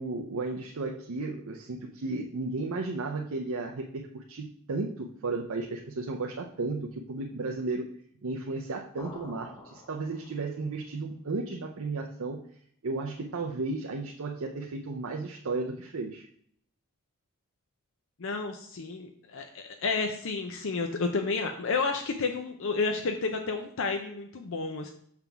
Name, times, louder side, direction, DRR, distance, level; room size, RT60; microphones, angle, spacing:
voice 1, 0.0-7.9 8.2-12.4 12.8-16.3, right 3 dB, 70° right, 1 dB, 0.6 m, -34 dB
sound 1, 9.0-10.7, left 2 dB, 15° left, 0.9 m, -48 dB
voice 2, 18.2-24.9, left 4 dB, 60° left, 5 dB, 0.6 m, -31 dB
5.9 x 3.5 x 5.8 m, 0.63 s
head